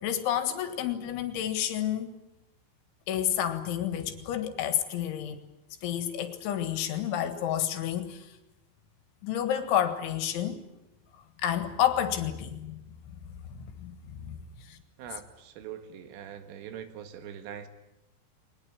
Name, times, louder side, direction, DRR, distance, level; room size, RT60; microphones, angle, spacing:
voice 1, 0.0-2.2 3.1-5.4 5.8-8.3 9.2-10.6 11.4-12.8 13.5-14.4 14.7-14.8, left 10 dB, 75° left, 4.0 m, -30 dB
voice 2, 15.0-17.7, right 9 dB, 85° right, 4.3 m, -42 dB
22.0 x 20.0 x 10.0 m
omnidirectional pair, 5.6 m